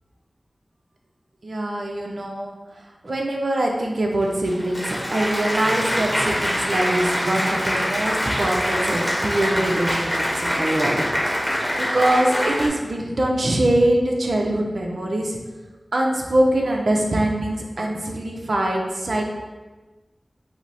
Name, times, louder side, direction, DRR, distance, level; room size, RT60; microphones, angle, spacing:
voice 1, 1.4-2.5 3.0-11.0 11.8-15.4 15.9-19.2, right 1 dB, 70° right, 0 dB, 0.6 m, -23 dB
Applause, 4.2-12.7, equal, 5° left, 1.0 m, -24 dB
5.6 x 2.1 x 4.1 m, 1.2 s
cardioid pair, 40°, 0 cm